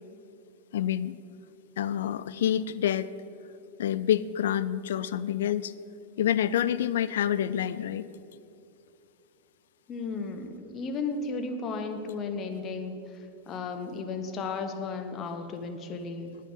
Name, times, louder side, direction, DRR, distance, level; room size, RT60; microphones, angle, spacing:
voice 1, 0.7-1.1 1.8-3.1 3.8-5.7 6.2-8.0, left 10 dB, 60° left, 15 dB, 0.3 m, -27 dB
voice 2, 9.9-16.4, left 4 dB, 30° left, 6 dB, 1.0 m, -34 dB
10.0 x 9.0 x 5.6 m, 2.7 s
figure-of-eight pair, 90°, 0 cm